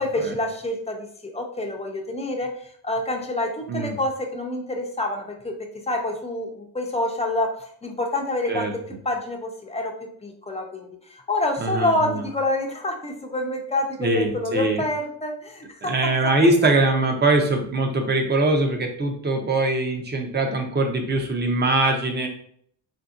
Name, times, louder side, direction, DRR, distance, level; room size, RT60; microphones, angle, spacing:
voice 1, 0.0-16.3, left 1 dB, 15° left, 2 dB, 0.5 m, -27 dB
voice 2, 11.6-12.2 14.0-14.8 15.8-22.3, right 2 dB, 25° right, 4 dB, 0.6 m, -22 dB
3.4 x 2.7 x 2.4 m, 0.62 s
cardioid pair, 95°, 46 cm